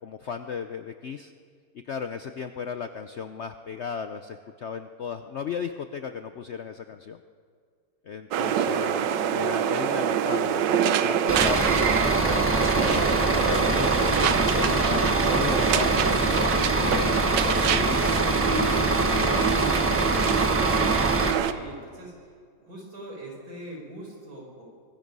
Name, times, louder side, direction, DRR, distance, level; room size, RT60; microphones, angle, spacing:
voice 1, 0.0-1.3 1.9-7.2 8.0-11.7 12.2-18.0 18.5-19.4, left 6 dB, 85° left, 8 dB, 0.6 m, -35 dB
sound 1, 8.3-21.5, right 9 dB, 75° right, 1.4 m, -25 dB
voice 2, 8.5-9.3 21.2-22.3 22.6-24.6, right 1 dB, 50° right, -1 dB, 5.4 m, -43 dB
Bus / Idling, 11.3-21.3, right 1 dB, 10° right, 1.0 m, -25 dB
sound 2, 14.8-14.9 15.4-15.5 16.1-16.3 16.7-17.0 17.4-17.5 18.0-18.2 18.7-18.8 19.3-19.5 19.9-20.1 20.5-20.7, right 1 dB, 30° right, 5.5 m, -38 dB
24.5 x 20.5 x 5.4 m, 2.1 s
omnidirectional pair, 2.0 m